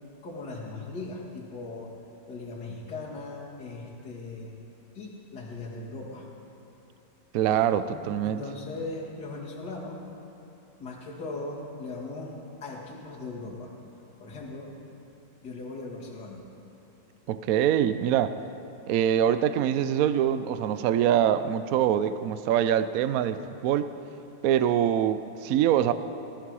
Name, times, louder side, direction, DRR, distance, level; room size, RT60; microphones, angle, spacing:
voice 1, 0.2-2.0 2.3-4.5 4.9-6.3 7.9-10.1 10.8-13.7 14.2-14.7 15.4-16.5, left 3 dB, 60° left, -5 dB, 2.8 m, -39 dB
voice 2, 7.3-8.4 17.3-18.4 18.9-23.9 24.4-25.9, right 10 dB, 75° right, 13 dB, 0.8 m, -24 dB
19.5 x 13.0 x 4.8 m, 3.0 s
omnidirectional pair, 2.1 m